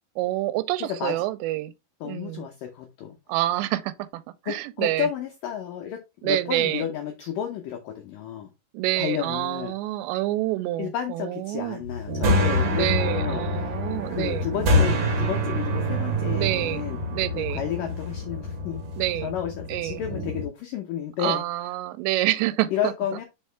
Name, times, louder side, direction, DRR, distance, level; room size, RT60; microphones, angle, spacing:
voice 1, 0.2-1.7 2.0-2.5 3.3-5.1 6.2-6.9 8.7-11.8 12.7-14.5 16.3-16.8 17.1-17.6 19.0-19.3 19.7-20.0 21.2-22.9, right 16 dB, 90° right, 2.8 m, -27 dB
voice 2, 0.8-1.1 2.0-3.2 4.5-8.5 9.0-9.7 10.8-13.8 14.1-17.0 17.3-18.8 19.2-21.4 22.7-23.2, left 9 dB, 85° left, 1.9 m, -31 dB
sound 1, 11.8-20.5, equal, 65° right, 1.7 m, -26 dB
6.4 x 4.7 x 3.3 m
omnidirectional pair, 4.9 m